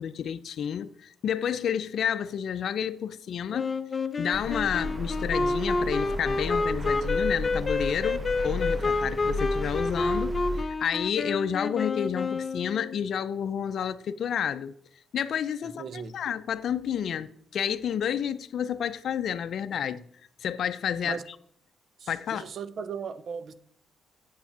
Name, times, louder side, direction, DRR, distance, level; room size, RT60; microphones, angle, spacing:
voice 1, 0.0-3.7 4.2-14.7 15.1-15.8 16.1-20.0 20.4-21.2 22.1-22.4, left 8 dB, 65° left, 0.5 m, -30 dB
Wind instrument woodwind instrument, 3.5-13.0, left 3 dB, 30° left, 0.8 m, -29 dB
sound 1, 4.3-10.6, left 1 dB, 20° right, 1.1 m, -34 dB
voice 2, 15.6-16.2 21.0-21.2 22.0-23.5, right 6 dB, 55° right, 0.8 m, -37 dB
8.2 x 7.1 x 7.3 m
cardioid pair, 90°, 0 cm